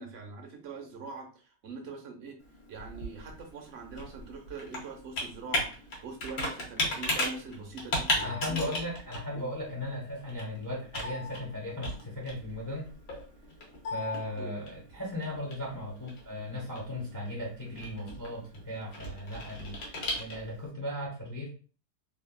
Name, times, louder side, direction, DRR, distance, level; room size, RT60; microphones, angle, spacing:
voice 1, 0.0-2.4 2.7-8.7 9.4-9.5 14.4-14.6, right 4 dB, 55° right, 2 dB, 0.8 m, -43 dB
Computer keyboard, 2.4-20.7, left 1 dB, 85° left, 1.5 m, -37 dB
voice 2, 8.2-12.9 13.9-19.8 20.2-21.5, left 1 dB, 15° left, -4 dB, 0.6 m, -37 dB
3.4 x 2.2 x 2.2 m, 0.37 s
omnidirectional pair, 1.7 m